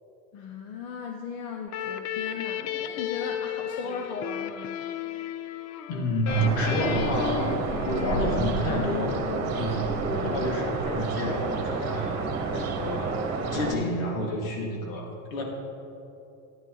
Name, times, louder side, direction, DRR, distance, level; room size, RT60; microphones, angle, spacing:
voice 1, 0.3-4.8, left 5 dB, 60° left, 3 dB, 0.9 m, -37 dB
sound 1, 1.7-10.2, left 11 dB, 45° left, 0.5 m, -34 dB
voice 2, 5.9-9.2 9.5-12.3 12.5-15.4, equal, 80° left, 0 dB, 2.4 m, -29 dB
sound 2, 6.3-13.7, right 4 dB, 40° right, 1.6 m, -30 dB
11.5 x 9.4 x 3.9 m, 2.8 s
supercardioid pair, 110°, 40 cm